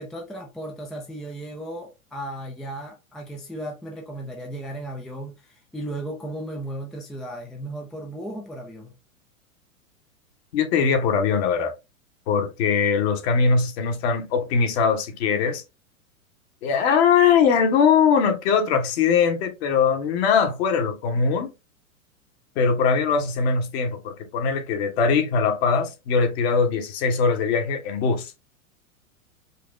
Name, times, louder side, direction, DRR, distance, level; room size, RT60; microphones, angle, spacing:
voice 1, 0.0-8.9, right 1 dB, ahead, 0.4 m, -35 dB
voice 2, 10.5-11.7 12.3-15.6 16.6-21.5 22.5-28.3, left 6 dB, 50° left, 1.4 m, -21 dB
5.0 x 3.0 x 3.3 m
figure-of-eight pair, 100°, 42 cm